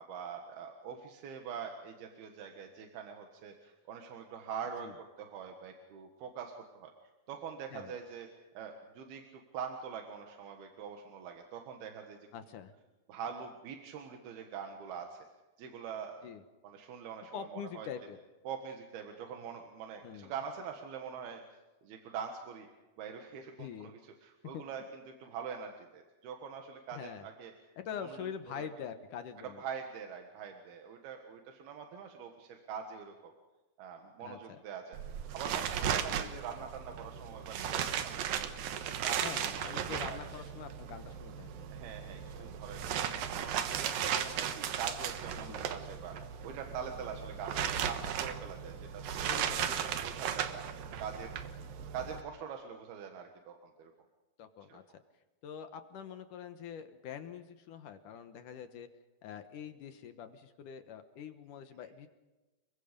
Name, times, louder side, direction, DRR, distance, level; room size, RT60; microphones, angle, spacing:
voice 1, 0.0-6.9 7.3-8.3 8.6-12.3 13.1-15.2 15.6-16.2 16.6-17.5 17.7-17.9 18.5-21.4 21.8-22.7 23.0-27.5 28.0-28.2 28.6-28.7 29.6-33.3 33.8-35.0 35.3-40.2 41.7-49.3 49.6-50.7 51.0-51.6 51.9-53.9 54.7-54.8, right 7 dB, 90° right, 4 dB, 3.6 m, -44 dB
voice 2, 12.3-12.7 16.2-16.4 17.3-18.2 20.0-20.3 23.6-23.9 24.5-24.6 26.9-27.3 27.8-29.6 34.2-34.6 36.2-36.3 39.2-41.6 45.5-45.6 49.3-49.9 54.4-54.8 55.4-58.9 59.2-62.1, left 8 dB, 65° left, 8 dB, 2.5 m, -44 dB
sound 1, 34.9-52.2, right 9 dB, 75° right, 3.0 m, -36 dB
29.0 x 23.5 x 5.2 m, 1.1 s
omnidirectional pair, 4.3 m